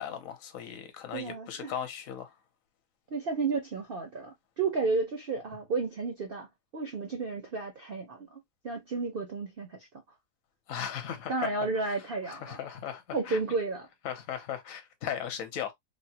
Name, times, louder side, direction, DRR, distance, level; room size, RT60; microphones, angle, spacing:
voice 1, 0.0-2.3 10.7-11.3 12.3-13.5 14.0-15.7, left 9 dB, 65° left, 1.1 m, -37 dB
voice 2, 1.1-1.7 3.1-6.5 6.7-9.8 11.3-12.6 13.1-13.9, right 4 dB, 65° right, 0.5 m, -32 dB
3.4 x 2.1 x 2.7 m
omnidirectional pair, 1.7 m